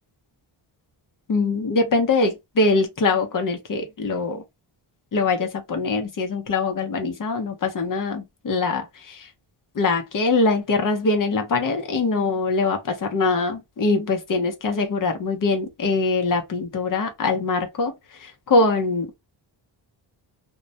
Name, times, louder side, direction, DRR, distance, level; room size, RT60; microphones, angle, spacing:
voice 1, 1.3-4.4 5.1-9.3 9.8-17.9 18.2-19.1, left 3 dB, 45° left, 0.6 m, -23 dB
2.2 x 2.0 x 2.7 m
wide cardioid pair, 145°, 47 cm